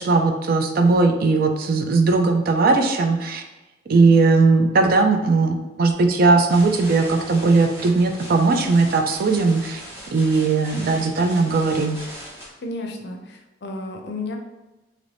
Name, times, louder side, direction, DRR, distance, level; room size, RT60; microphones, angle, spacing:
voice 1, 0.0-3.4 3.9-9.8 10.1-12.0, right 3 dB, 50° right, 5 dB, 0.4 m, -18 dB
sound 1, 6.5-12.5, equal, 15° right, 0.9 m, -39 dB
voice 2, 12.6-14.4, left 2 dB, 60° left, 3 dB, 0.5 m, -32 dB
2.9 x 2.6 x 3.3 m, 1.1 s
head